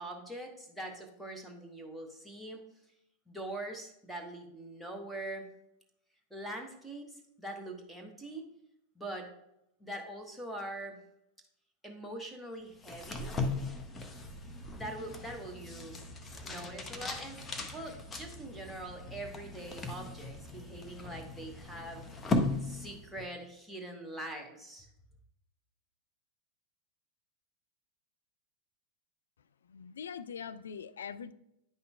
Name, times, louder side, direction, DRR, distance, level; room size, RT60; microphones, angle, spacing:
voice 1, 0.0-2.6 3.3-5.5 6.3-8.5 8.9-9.3 9.8-11.0 11.8-13.3 14.7-16.0 16.4-17.4 17.7-22.0 22.6-24.9, right 1 dB, ahead, 1.2 m, -43 dB
sound 1, 12.8-23.3, left 2 dB, 15° left, 0.7 m, -38 dB
voice 2, 29.7-31.3, left 7 dB, 65° left, 0.3 m, -42 dB
9.2 x 5.6 x 2.3 m
figure-of-eight pair, 90°, 0 cm